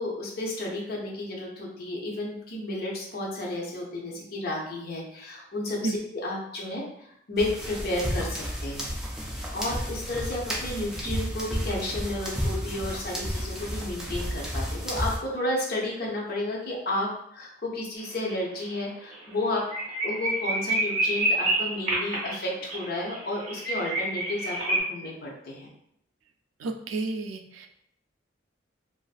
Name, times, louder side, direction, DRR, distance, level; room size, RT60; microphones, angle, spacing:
voice 1, 0.0-8.9 9.5-19.7 20.0-25.7, left 1 dB, 50° left, -2 dB, 0.5 m, -32 dB
sound 1, 7.4-15.2, equal, 5° right, 0.3 m, -32 dB
sound 2, 18.0-18.3 18.6-18.7 19.1-19.2 19.5-24.8, right 2 dB, 35° right, 0.8 m, -28 dB
voice 2, 26.6-27.7, right 3 dB, 90° right, 5 dB, 0.3 m, -31 dB
2.4 x 2.4 x 2.3 m, 0.73 s
head